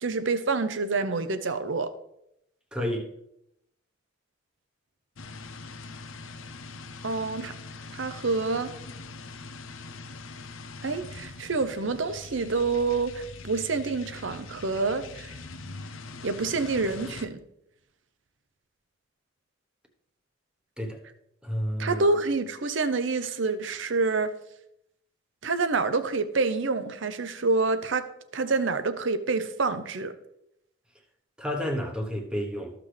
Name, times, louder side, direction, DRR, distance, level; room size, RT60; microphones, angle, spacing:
voice 1, 0.0-1.9 7.0-7.5 7.9-8.7 10.8-15.3 16.2-17.4 21.8-24.3 25.4-28.0 28.3-30.1, right 3 dB, 70° right, 0.7 m, -27 dB
voice 2, 2.7-3.1 20.8-21.0 21.4-22.0 31.4-32.7, equal, 5° right, 1.1 m, -30 dB
sound 1, 5.2-17.3, left 3 dB, 80° left, 0.7 m, -42 dB
14.0 x 6.0 x 3.3 m
head